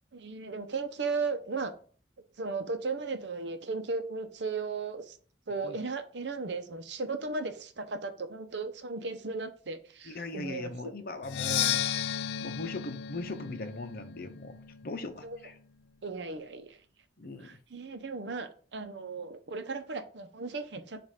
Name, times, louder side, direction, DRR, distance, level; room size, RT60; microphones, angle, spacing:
voice 1, 0.1-1.7 2.4-5.2 5.5-10.7 15.2-15.4 16.0-16.8 17.4-21.0, right 4 dB, 75° right, 8 dB, 0.7 m, -36 dB
voice 2, 10.0-11.8 12.4-15.5 17.2-17.5, left 2 dB, 55° left, 8 dB, 0.7 m, -39 dB
Percussion, 11.2-15.0, left 10 dB, 70° left, 0.3 m, -33 dB
7.4 x 2.6 x 5.0 m, 0.43 s
head